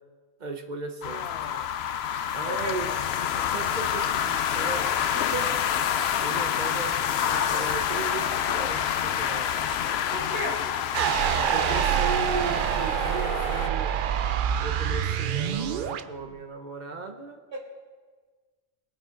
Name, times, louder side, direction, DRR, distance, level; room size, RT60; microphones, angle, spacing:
voice 1, 0.4-1.5 2.3-2.9 3.2-5.0 6.2-9.5 11.5-14.0 14.6-17.5, right 4 dB, 45° right, 6 dB, 1.1 m, -36 dB
sound 1, 1.0-13.7, left 9 dB, 80° left, 0.8 m, -28 dB
voice 2, 2.4-2.7 3.3-3.5 5.1-5.6 10.1-10.7 17.5-17.6, right 1 dB, 80° right, -4 dB, 3.1 m, -34 dB
sound 2, 10.9-16.0, right 9 dB, 60° right, 0.6 m, -26 dB
20.5 x 8.8 x 3.8 m, 1.4 s
omnidirectional pair, 1.1 m